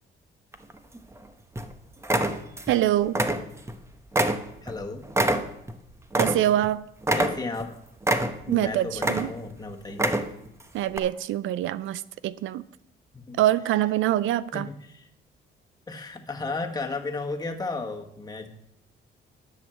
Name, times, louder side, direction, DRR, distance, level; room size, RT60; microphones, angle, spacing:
sound 1, 0.5-1.2 1.6-1.7 2.0-2.8 3.1-3.8 4.1-6.7 7.0-7.7 8.0-8.6 8.9-9.5 9.9-10.5 10.9-11.0, right 1 dB, 15° right, 1.0 m, -25 dB
voice 1, 2.7-3.2 6.2-6.8 8.5-9.3 10.7-12.6 13.4-14.7, right 13 dB, 80° right, 0.4 m, -24 dB
voice 2, 4.6-5.0 7.1-7.8 8.5-10.1 13.1-13.4 14.5-15.1 15.9-18.5, left 3 dB, 20° left, 1.6 m, -34 dB
11.0 x 6.5 x 6.9 m
cardioid pair, 90°, 20 cm